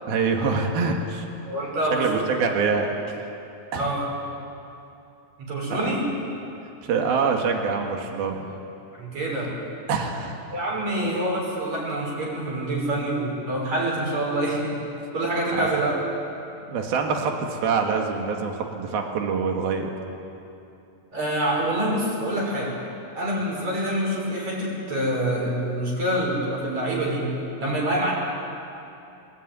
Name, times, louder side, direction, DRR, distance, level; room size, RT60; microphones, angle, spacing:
voice 1, 0.1-1.3 1.9-3.3 3.7-3.9 5.7-6.0 6.8-8.5 9.9-10.4 15.5-15.7 16.7-19.9, right 5 dB, 75° right, 2 dB, 3.8 m, -25 dB
voice 2, 1.5-2.3 3.7-4.1 5.4-6.0 9.0-9.6 10.5-14.8 15.1-15.9 21.1-22.8 23.2-27.3 27.6-28.1, right 1 dB, 45° right, -2 dB, 7.2 m, -26 dB
25.0 x 20.5 x 9.6 m, 2.8 s
omnidirectional pair, 4.3 m